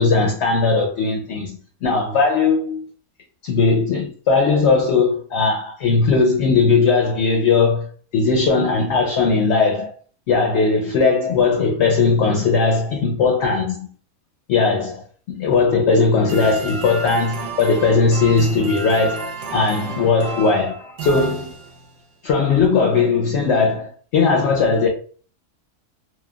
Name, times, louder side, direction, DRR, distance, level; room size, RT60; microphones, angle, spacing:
voice 1, 0.0-2.9 3.4-9.9 10.3-13.9 14.5-21.5 22.2-24.9, left 4 dB, 65° left, 0.7 m, -18 dB
sound 1, 16.3-22.0, right 4 dB, 60° right, 0.9 m, -31 dB
3.0 x 2.2 x 2.2 m
omnidirectional pair, 1.6 m